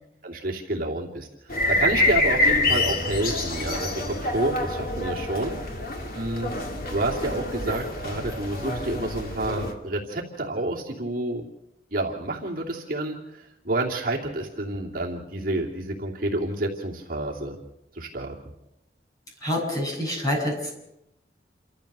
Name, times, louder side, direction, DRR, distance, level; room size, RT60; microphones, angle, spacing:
voice 1, 0.2-1.3 1.7-5.5 6.1-6.5 6.9-11.5 11.9-17.5 17.9-18.3, right 2 dB, 55° right, -2 dB, 2.8 m, -29 dB
sound 1, 1.5-9.7, left 2 dB, 55° left, 2.5 m, -26 dB
voice 2, 19.4-20.7, left 1 dB, 20° left, -2 dB, 7.7 m, -27 dB
29.0 x 13.5 x 6.8 m, 0.86 s
head